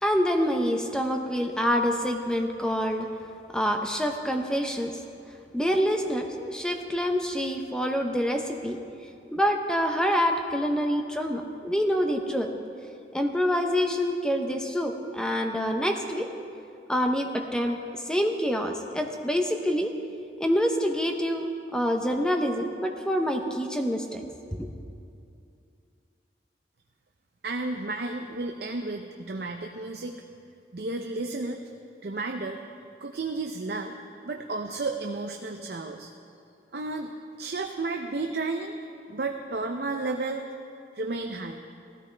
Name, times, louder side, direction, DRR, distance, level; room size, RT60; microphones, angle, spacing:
voice 1, 0.0-3.1 3.5-4.9 5.5-8.8 9.3-12.5 13.1-16.3 16.9-19.9 20.4-24.7, equal, 5° left, 4 dB, 0.7 m, -26 dB
voice 2, 27.4-30.2 30.7-31.6 32.0-32.6 33.0-33.9 34.2-36.1 36.7-37.1 37.4-38.8 39.1-40.5 40.9-41.6, right 3 dB, 60° right, 4 dB, 0.6 m, -32 dB
16.5 x 13.5 x 3.4 m, 2.5 s
head